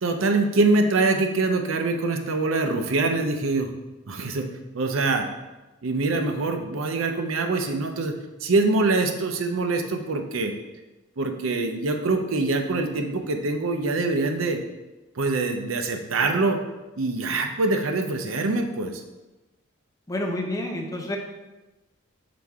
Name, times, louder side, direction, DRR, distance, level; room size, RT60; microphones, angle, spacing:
voice 1, 0.0-3.7 4.1-4.5 4.7-5.3 5.8-8.1 8.4-10.5 11.2-14.6 15.2-16.6 17.0-19.0, right 3 dB, 75° right, 5 dB, 0.6 m, -24 dB
voice 2, 20.1-21.2, left 1 dB, 15° left, 1 dB, 0.7 m, -29 dB
5.9 x 4.8 x 3.5 m, 1.1 s
head